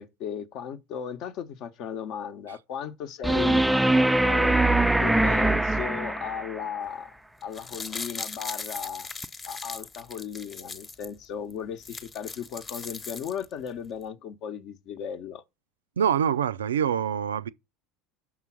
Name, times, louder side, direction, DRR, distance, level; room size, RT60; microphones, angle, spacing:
voice 1, 0.0-3.6 4.2-7.1 7.4-9.1 9.5-15.4, left 8 dB, 55° left, 0.8 m, -36 dB
sound 1, 3.2-6.6 9.2-9.3, right 2 dB, 5° right, 0.3 m, -22 dB
sound 2, 7.4-11.1 11.5-11.6 11.8-13.7 14.0-14.1, left 4 dB, 25° left, 1.0 m, -39 dB
voice 2, 16.0-17.5, right 8 dB, 85° right, 0.3 m, -25 dB
6.1 x 3.8 x 5.9 m
hypercardioid pair, 80°, 0 cm